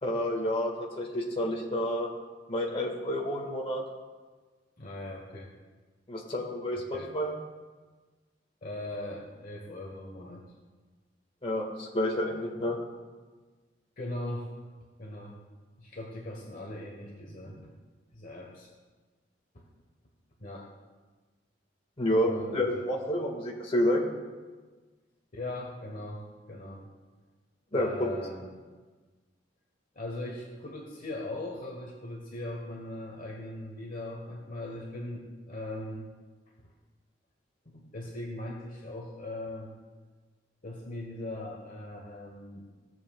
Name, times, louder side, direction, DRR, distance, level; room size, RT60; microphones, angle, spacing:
voice 1, 0.0-2.1 2.5-3.8 6.1-6.8 7.1-7.3 11.4-12.8 22.0-24.0 27.7-28.1, left 1 dB, 30° left, -2 dB, 1.7 m, -29 dB
voice 2, 4.8-5.5 6.7-7.1 8.6-10.4 14.0-14.6 15.0-15.4 15.8-17.7 18.1-18.7 19.5-19.6 20.4-20.7 22.2-22.8 25.3-26.8 27.7-28.5 29.9-36.1 37.6-39.7 40.6-42.7, left 1 dB, 45° left, -1 dB, 1.1 m, -39 dB
17.0 x 7.4 x 2.3 m, 1.4 s
head